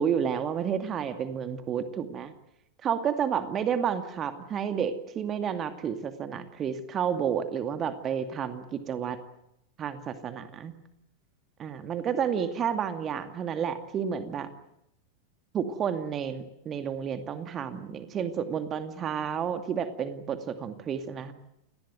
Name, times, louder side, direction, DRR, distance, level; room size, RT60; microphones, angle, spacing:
voice 1, 0.0-2.3 2.8-9.2 9.8-10.7 11.6-14.5 15.5-21.3, right 8 dB, 25° right, 9 dB, 2.4 m, -30 dB
29.0 x 19.5 x 9.4 m, 0.81 s
figure-of-eight pair, 90°, 0 cm